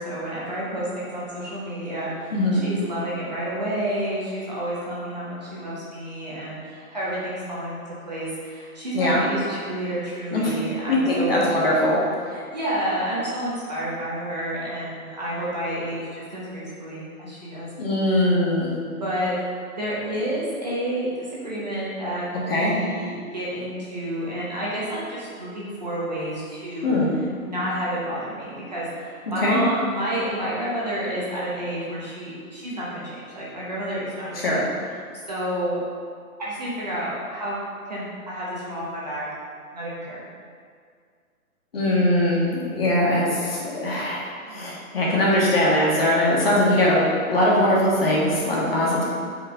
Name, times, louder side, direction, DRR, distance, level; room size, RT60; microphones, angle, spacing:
voice 1, 0.0-11.5 12.3-17.7 18.0-18.3 18.9-19.3 19.8-26.9 27.4-34.6 35.3-35.8 36.4-37.6 37.8-39.2 39.7-40.2 44.5-44.7, right 1 dB, 30° right, -7 dB, 1.0 m, -30 dB
voice 2, 2.3-2.6 8.9-9.2 10.3-10.5 10.9-12.0 17.8-18.7 22.5-22.7 26.8-27.1 29.4-29.6 34.4-34.6 41.7-44.2 44.5-47.0 47.3-49.0, left 1 dB, 40° left, -6 dB, 1.6 m, -21 dB
7.3 x 4.9 x 3.8 m, 2.1 s
hypercardioid pair, 180°, 44 cm